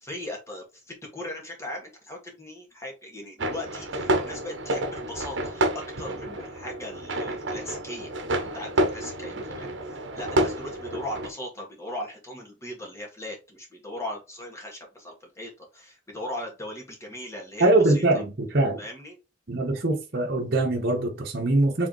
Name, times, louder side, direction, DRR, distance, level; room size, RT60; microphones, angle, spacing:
voice 1, 0.0-8.1 8.4-18.0 18.8-19.2, left 1 dB, 15° left, 1.8 m, -38 dB
sound 1, 3.4-11.3, right 1 dB, 80° right, 0.9 m, -29 dB
voice 2, 17.6-18.8 19.5-21.9, right 2 dB, 55° right, 1.0 m, -23 dB
4.8 x 3.6 x 3.0 m
head